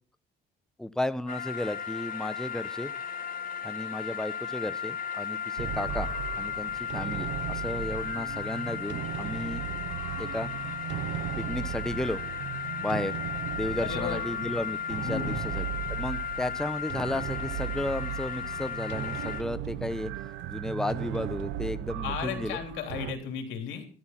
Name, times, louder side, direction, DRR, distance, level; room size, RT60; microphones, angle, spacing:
voice 1, 0.8-2.9 3.6-9.6 10.2-10.5 11.4-12.2 12.8-13.2 13.5-20.1 20.5-22.6, left 1 dB, 5° left, 12 dB, 0.9 m, -34 dB
sound 1, 1.3-19.4, left 7 dB, 50° left, 2.7 m, -35 dB
sound 2, 5.6-23.1, right 10 dB, 85° right, 1.1 m, -36 dB
voice 2, 13.8-14.2 15.0-15.4 22.0-23.9, left 8 dB, 90° left, 5 dB, 3.2 m, -34 dB
13.0 x 12.0 x 5.8 m, 0.39 s
cardioid pair, 80°, 19 cm